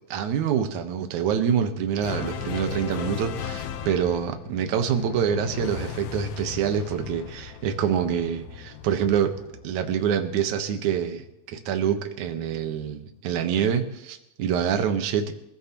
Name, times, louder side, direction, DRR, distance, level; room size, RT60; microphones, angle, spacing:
voice 1, 0.1-9.3 9.6-15.3, right 8 dB, 65° right, 6 dB, 2.6 m, -26 dB
sound 1, 2.0-10.5, left 8 dB, 70° left, 2.1 m, -36 dB
28.5 x 15.5 x 3.0 m, 0.85 s
omnidirectional pair, 3.9 m